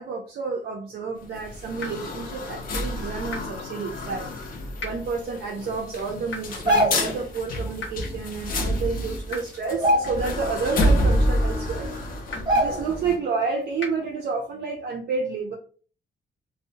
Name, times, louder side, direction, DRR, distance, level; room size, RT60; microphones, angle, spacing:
voice 1, 0.0-4.3 4.8-11.9 12.5-15.5, right 4 dB, 55° right, 2 dB, 0.4 m, -30 dB
sound 1, 1.2-13.2, equal, 45° left, 0.5 m, -28 dB
sound 2, 1.8-1.9 3.3-3.4 4.8-4.9 6.3-6.4 7.8-7.9 9.3-9.4 10.8-10.9 12.3-12.4 13.8-13.9, left 3 dB, 75° left, 1.0 m, -33 dB
sound 3, 6.5-7.2 8.7-8.8 9.1-9.3 9.7-10.5 10.9-11.0 11.8-11.9 12.5-13.1 13.5-13.6, equal, 20° right, 0.8 m, -24 dB
2.6 x 2.0 x 2.7 m, 0.40 s
wide cardioid pair, 175°, 20 cm